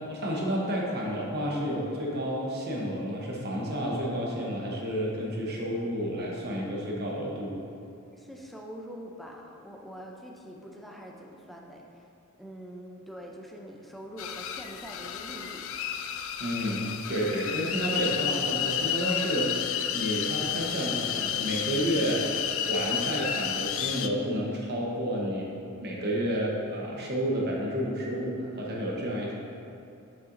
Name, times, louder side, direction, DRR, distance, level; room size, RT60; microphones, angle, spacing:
voice 1, 0.0-7.6 16.4-19.6 19.9-22.2 22.7-25.5 25.8-29.4, equal, 50° right, -3 dB, 1.0 m, -30 dB
voice 2, 8.1-12.1 12.4-15.7, equal, ahead, -1 dB, 0.5 m, -44 dB
sound 1, 14.2-24.1, left 9 dB, 65° left, 0.3 m, -31 dB
6.6 x 5.7 x 2.6 m, 2.7 s
head